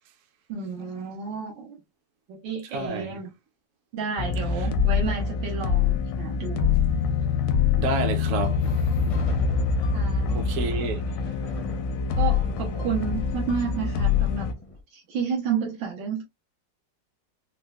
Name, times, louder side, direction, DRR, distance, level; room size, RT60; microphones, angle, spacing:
voice 1, 0.5-1.8 2.3-3.3 3.9-6.7 9.9-10.6 12.2-14.5 14.9-16.2, right 6 dB, 85° right, 1.6 m, -31 dB
voice 2, 2.7-3.2 5.0-5.1 7.8-8.7 10.3-11.3, right 3 dB, 60° right, 0.8 m, -30 dB
sound 1, 4.2-14.5, left 6 dB, 80° left, 1.3 m, -25 dB
sound 2, 8.6-14.8, equal, 50° left, 0.3 m, -43 dB
4.3 x 2.1 x 2.2 m
omnidirectional pair, 2.0 m